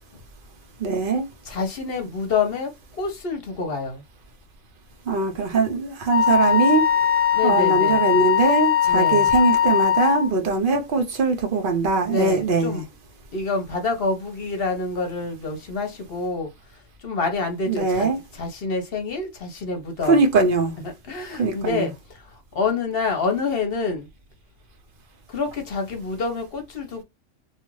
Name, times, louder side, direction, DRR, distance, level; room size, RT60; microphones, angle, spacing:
voice 1, 0.8-1.3 5.1-6.9 7.4-12.8 17.7-18.2 20.1-20.7 21.4-21.9, right 3 dB, 50° right, 0.8 m, -21 dB
voice 2, 1.4-4.0 7.3-8.0 8.8-9.3 12.1-12.8 13.3-16.5 17.0-20.2 20.8-24.1 25.3-27.0, left 4 dB, 50° left, 0.9 m, -27 dB
Wind instrument woodwind instrument, 6.1-10.3, left 9 dB, 15° left, 0.5 m, -20 dB
2.7 x 2.4 x 3.1 m
omnidirectional pair, 1.4 m